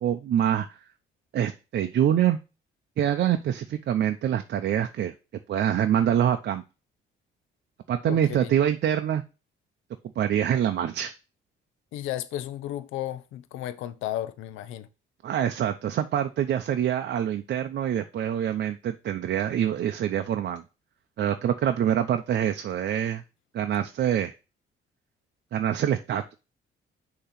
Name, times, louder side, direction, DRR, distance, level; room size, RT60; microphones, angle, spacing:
voice 1, 0.0-0.8 1.3-2.4 3.0-5.1 5.5-6.6 7.9-9.2 10.2-11.1 15.2-20.6 21.2-23.2 23.5-24.3 25.5-26.2, right 10 dB, 60° right, 0.6 m, -25 dB
voice 2, 8.0-8.5 11.9-14.9, left 13 dB, 90° left, 0.6 m, -34 dB
6.5 x 2.9 x 5.8 m
cardioid pair, 90°, 20 cm